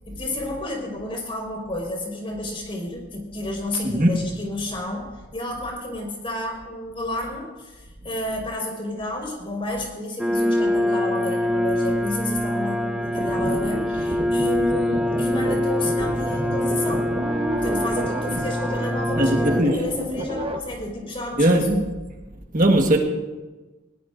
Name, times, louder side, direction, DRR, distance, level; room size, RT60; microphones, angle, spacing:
voice 1, 0.1-17.1 17.3-21.8, left 1 dB, 30° left, -1 dB, 4.8 m, -31 dB
sound 1, 10.2-19.6, left 1 dB, 5° right, 0.5 m, -24 dB
sound 2, 13.0-20.6, right 1 dB, 30° right, 1.0 m, -31 dB
voice 2, 19.2-19.8 21.4-21.9 22.5-23.0, right 1 dB, 45° right, 2 dB, 1.5 m, -19 dB
21.0 x 18.5 x 2.6 m, 1.2 s
head